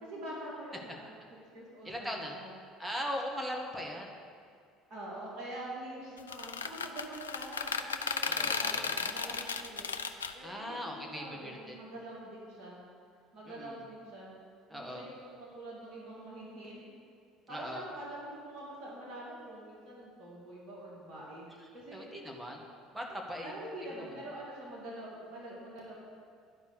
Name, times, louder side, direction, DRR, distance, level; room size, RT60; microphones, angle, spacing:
voice 1, 0.1-1.2 1.5-2.5 4.9-9.9 10.3-12.8 13.3-14.3 14.7-16.9 17.5-21.5 21.7-22.1 23.4-25.9, right 1 dB, 50° right, -4 dB, 2.4 m, -45 dB
voice 2, 1.8-2.3 2.8-4.1 8.2-8.9 10.4-11.8 13.5-13.8 14.7-15.0 17.5-17.8 21.9-22.6 22.9-23.5 24.0-24.1, equal, 10° right, 0 dB, 1.7 m, -39 dB
sound 1, 6.2-10.3, left 5 dB, 85° left, 0.4 m, -34 dB
11.5 x 5.2 x 7.1 m, 2.3 s
figure-of-eight pair, 60°, 0 cm